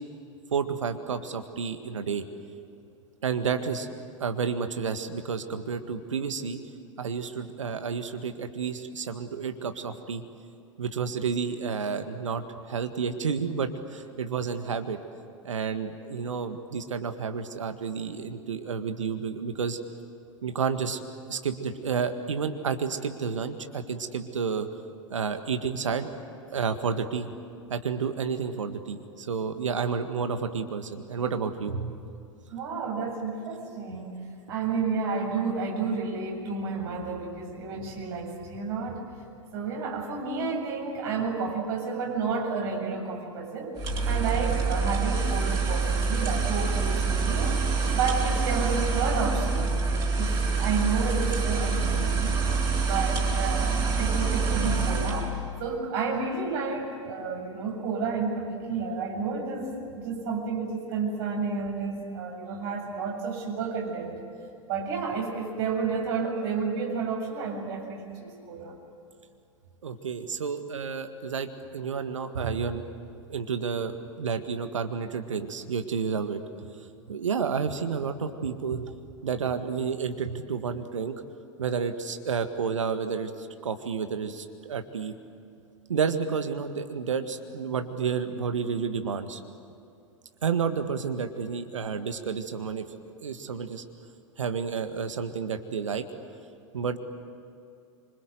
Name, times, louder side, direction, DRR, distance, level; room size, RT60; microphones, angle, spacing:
voice 1, 0.5-2.2 3.2-3.9 4.2-6.6 7.0-10.2 10.8-15.0 15.4-19.8 20.4-21.0 21.3-24.7 25.1-26.1 26.5-27.3 27.7-32.0 69.8-72.8 73.3-76.4 77.1-78.9 79.2-81.1 81.6-85.1 85.9-89.4 90.4-92.9 93.2-93.8 94.4-96.0 96.7-97.0, right 6 dB, 70° right, 7 dB, 1.8 m, -30 dB
voice 2, 32.5-34.1 34.5-39.0 39.5-47.6 47.9-52.5 52.8-53.7 54.0-55.3 55.6-64.2 64.7-68.7, right 4 dB, 50° right, 0 dB, 7.9 m, -31 dB
sound 1, 43.8-55.3, right 4 dB, 30° right, 6.5 m, -26 dB
27.5 x 26.0 x 8.0 m, 2.6 s
figure-of-eight pair, 90°, 16 cm